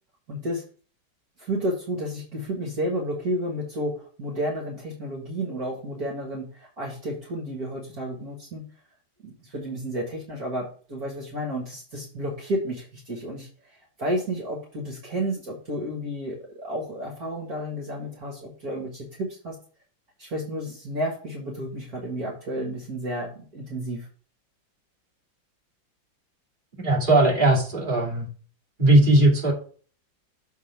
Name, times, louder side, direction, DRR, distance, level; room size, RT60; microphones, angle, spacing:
voice 1, 0.3-0.6 1.4-8.6 9.2-13.5 14.0-19.6 20.2-24.1, equal, 50° right, -1 dB, 2.0 m, -31 dB
voice 2, 26.8-28.3 28.8-29.5, right 1 dB, 25° right, -3 dB, 2.3 m, -18 dB
7.4 x 3.5 x 5.8 m, 0.42 s
omnidirectional pair, 2.1 m